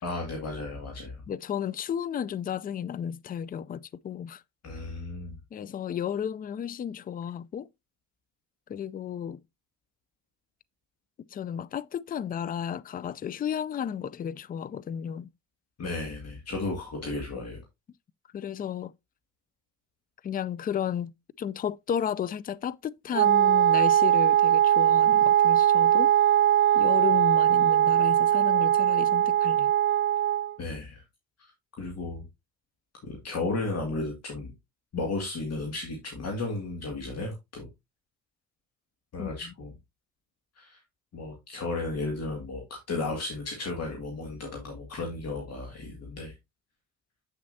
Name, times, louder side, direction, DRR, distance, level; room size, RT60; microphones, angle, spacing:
voice 1, 0.0-1.2 4.6-5.4 15.8-17.6 30.6-31.0 31.8-32.2 33.0-34.5 34.9-37.7 39.1-39.7 40.6-40.8 41.1-42.6 42.9-46.3, left 3 dB, 55° left, 2.1 m, -34 dB
voice 2, 1.3-4.4 5.5-7.7 8.7-9.4 11.3-15.3 18.3-18.9 20.2-21.1 21.4-26.1 26.7-29.7 39.2-39.3, left 8 dB, 30° left, 0.4 m, -33 dB
Wind instrument woodwind instrument, 23.1-30.6, right 11 dB, 40° right, 0.5 m, -21 dB
8.1 x 6.3 x 2.7 m
cardioid pair, 90°, 30 cm